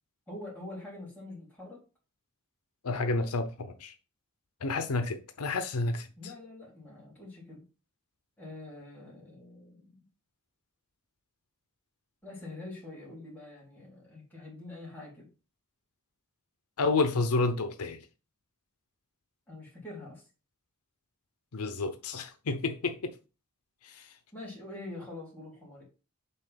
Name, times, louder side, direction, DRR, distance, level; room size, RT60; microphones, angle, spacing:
voice 1, 0.3-1.8 6.2-7.6 8.4-10.0 12.2-15.3 19.5-20.3 24.3-25.8, left 2 dB, 10° left, 3.6 m, -45 dB
voice 2, 2.8-3.9 4.6-6.1 16.8-18.0 21.5-23.2 23.8-24.1, left 3 dB, 90° left, 0.7 m, -30 dB
5.6 x 3.8 x 5.8 m
head